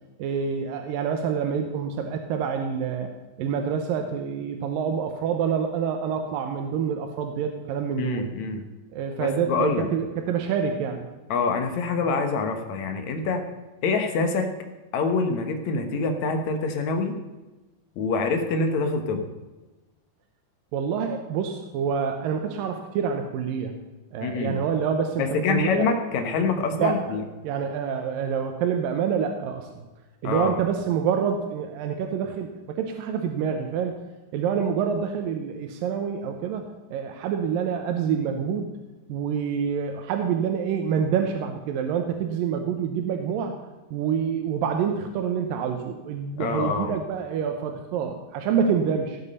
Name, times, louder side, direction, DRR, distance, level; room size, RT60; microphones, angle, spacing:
voice 1, 0.2-3.1 3.4-8.3 8.9-11.0 20.7-23.7 24.1-25.9 26.8-27.0 27.4-29.9 30.2-33.9 34.3-36.6 36.9-38.7 39.1-43.6 43.9-49.2, right 7 dB, 85° right, 5 dB, 2.7 m, -27 dB
voice 2, 8.0-8.6 9.2-9.9 11.3-13.5 13.8-14.5 14.9-17.2 18.0-19.2 24.2-24.6 25.2-27.2 30.2-30.6 46.4-47.0, left 4 dB, 65° left, 6 dB, 2.4 m, -25 dB
17.0 x 8.3 x 5.5 m, 1.1 s
omnidirectional pair, 3.9 m